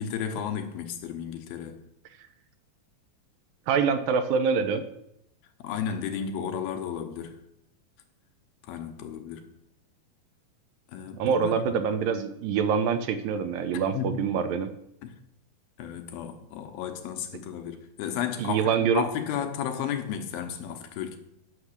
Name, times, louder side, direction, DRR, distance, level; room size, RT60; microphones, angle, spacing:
voice 1, 0.0-1.8 5.6-7.4 8.6-9.5 10.9-11.8 13.9-14.2 15.0-15.2 15.8-21.2, left 8 dB, 80° left, 5 dB, 2.7 m, -33 dB
voice 2, 3.7-4.8 11.2-14.7 18.4-19.0, right 6 dB, 75° right, 9 dB, 2.2 m, -25 dB
9.6 x 6.5 x 6.6 m, 0.79 s
omnidirectional pair, 4.3 m